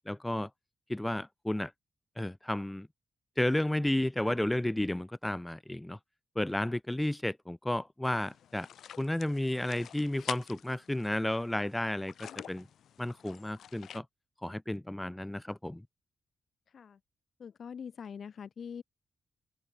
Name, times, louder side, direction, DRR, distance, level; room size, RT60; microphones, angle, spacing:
voice 1, 0.1-0.5 0.9-1.7 2.2-2.9 3.4-6.0 6.4-8.7 9.0-12.7 13.0-14.0 14.4-15.8, left 1 dB, 10° left, 0.4 m, -32 dB
sound 1, 8.0-14.0, left 9 dB, 80° left, 0.4 m, -47 dB
voice 2, 17.4-18.8, left 7 dB, 65° left, 1.7 m, -43 dB
open air
cardioid pair, 65°, 0 cm